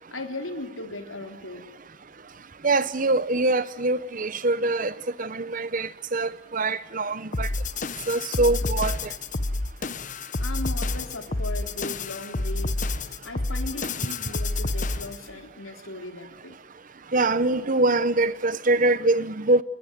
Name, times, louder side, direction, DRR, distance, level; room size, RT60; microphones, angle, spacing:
voice 1, 0.1-1.7 10.4-12.8 13.2-16.6, left 2 dB, 80° left, 3.8 m, -37 dB
voice 2, 2.6-4.9 5.2-7.5 8.1-9.1 17.1-19.6, right 2 dB, 40° right, 0.9 m, -24 dB
sound 1, 7.3-15.3, left 2 dB, 40° left, 1.1 m, -29 dB
28.5 x 21.0 x 9.3 m
head